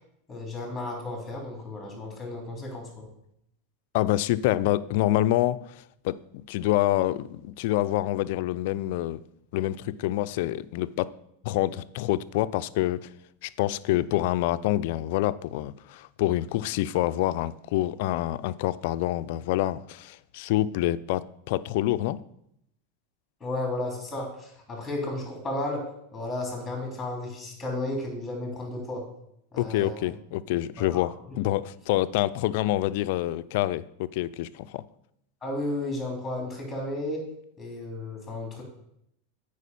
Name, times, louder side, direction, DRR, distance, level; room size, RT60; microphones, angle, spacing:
voice 1, 0.3-3.0 23.4-25.9 26.1-29.0 29.5-30.1 30.8-31.1 35.4-37.2 37.6-38.6, left 2 dB, 10° left, 3.1 m, -33 dB
voice 2, 3.9-5.6 6.0-9.2 9.5-11.1 11.4-13.1 13.4-22.2 29.6-34.8, left 15 dB, 60° left, 0.3 m, -27 dB
8.3 x 5.0 x 5.4 m
supercardioid pair, 135°, 0 cm